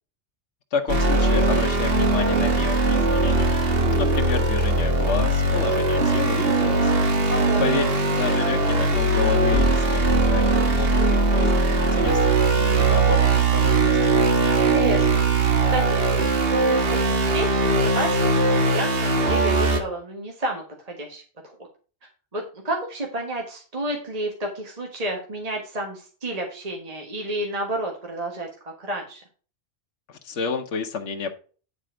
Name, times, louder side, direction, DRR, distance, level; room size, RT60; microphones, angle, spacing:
voice 1, 0.7-3.6 3.9-6.9 7.6-14.0 30.1-31.3, left 5 dB, 80° left, 3 dB, 1.2 m, -30 dB
sound 1, 0.9-19.8, right 2 dB, 55° right, 1.6 m, -20 dB
voice 2, 7.3-7.8 14.5-16.2 16.5-21.6 22.3-29.2, right 1 dB, 35° right, 1 dB, 1.5 m, -31 dB
9.6 x 4.3 x 4.9 m, 0.39 s
omnidirectional pair, 1.2 m